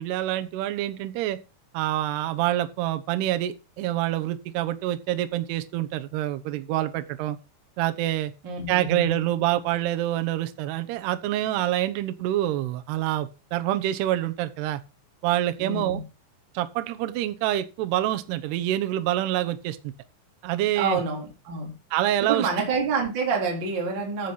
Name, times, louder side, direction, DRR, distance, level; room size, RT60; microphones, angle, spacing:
voice 1, 0.0-1.4 1.7-7.4 7.8-8.3 8.7-14.8 15.2-16.0 16.5-19.9 20.4-21.0 21.9-22.5, right 14 dB, 70° right, 2.8 m, -26 dB
voice 2, 8.4-9.2 15.6-16.0 20.7-21.8 22.2-24.3, right 4 dB, 25° right, 3.4 m, -27 dB
15.0 x 5.1 x 5.8 m
omnidirectional pair, 5.6 m